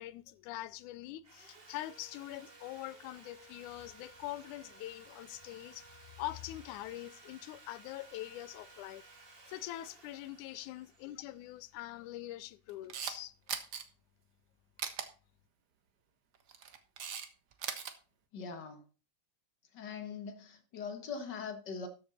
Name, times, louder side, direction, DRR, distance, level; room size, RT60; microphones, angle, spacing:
voice 1, 0.0-9.0 9.5-13.3, left 15 dB, 85° left, 2.1 m, -44 dB
Sawing, 1.2-12.3, right 3 dB, 30° right, 1.1 m, -57 dB
Camera, 12.7-13.2 13.5-13.8 14.8-15.1 16.3-17.3 17.5-17.9, right 7 dB, 70° right, 0.9 m, -38 dB
voice 2, 18.3-18.8 19.7-21.9, left 5 dB, 45° left, 1.5 m, -42 dB
13.0 x 7.9 x 4.2 m
omnidirectional pair, 3.4 m